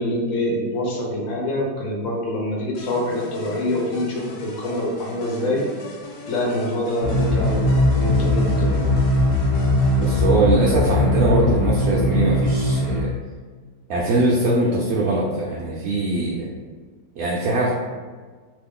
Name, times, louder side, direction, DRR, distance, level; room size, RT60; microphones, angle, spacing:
voice 1, 0.0-5.7 6.3-7.7 8.0-8.9, left 1 dB, 60° left, -3 dB, 1.0 m, -25 dB
sound 1, 2.7-10.2, left 3 dB, 80° left, 1.2 m, -39 dB
sound 2, 7.0-13.0, left 1 dB, 40° left, 1.0 m, -20 dB
voice 2, 10.0-13.1 13.9-16.5 17.2-17.7, right 2 dB, 70° right, -4 dB, 0.9 m, -21 dB
3.0 x 2.5 x 3.5 m, 1.5 s
omnidirectional pair, 1.8 m